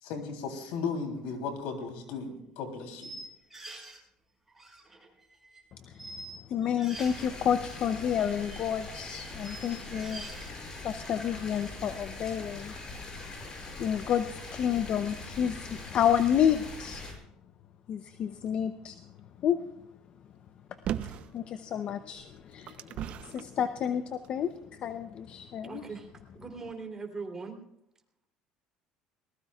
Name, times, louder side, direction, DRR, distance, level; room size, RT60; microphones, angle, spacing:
voice 1, 0.0-3.1, left 5 dB, 80° left, 4 dB, 3.4 m, -36 dB
sound 1, 1.3-1.4 1.8-1.9 3.0-4.0 4.5-5.6 5.9-7.3 7.7-10.5, right 2 dB, 5° right, 7.5 m, -46 dB
voice 2, 5.8-6.2 6.5-10.3 10.8-12.7 13.8-17.0 17.9-19.0 19.4-19.6 21.3-25.8, left 9 dB, 50° left, 10 dB, 0.8 m, -30 dB
sound 2, 6.9-17.1, left 2 dB, 30° left, 5.8 m, -42 dB
sound 3, 20.9-21.3 22.1-23.5 24.2-24.3, right 10 dB, 55° right, 0.7 m, -36 dB
voice 3, 25.6-26.1 26.3-27.6, right 4 dB, 20° right, 4 dB, 3.3 m, -40 dB
21.5 x 19.5 x 2.4 m, 0.82 s
cardioid pair, 115°, 2 cm